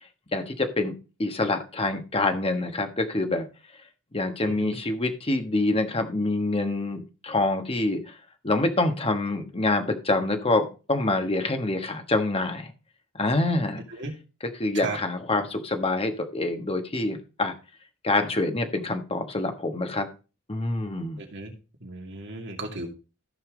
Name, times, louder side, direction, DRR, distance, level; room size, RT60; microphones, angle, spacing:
voice 1, 0.3-0.9 1.2-3.5 4.1-8.2 8.4-12.7 13.1-13.8 14.4-17.5 18.0-20.1 20.5-21.2, left 2 dB, 25° left, 6 dB, 1.3 m, -26 dB
voice 2, 4.5-4.8 14.0-14.1 14.7-15.0 21.2-21.5 21.8-22.9, right 3 dB, 55° right, 2 dB, 2.5 m, -35 dB
14.5 x 5.7 x 3.9 m, 0.32 s
head